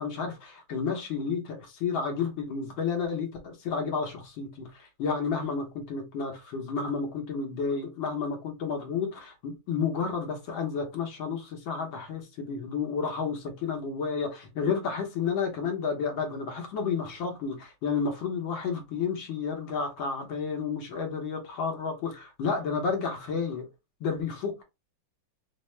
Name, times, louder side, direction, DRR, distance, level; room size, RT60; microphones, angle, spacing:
voice 1, 0.0-23.7 24.0-24.6, left 5 dB, 75° left, 1.6 m, -31 dB
4.4 x 2.0 x 3.1 m
omnidirectional pair, 2.2 m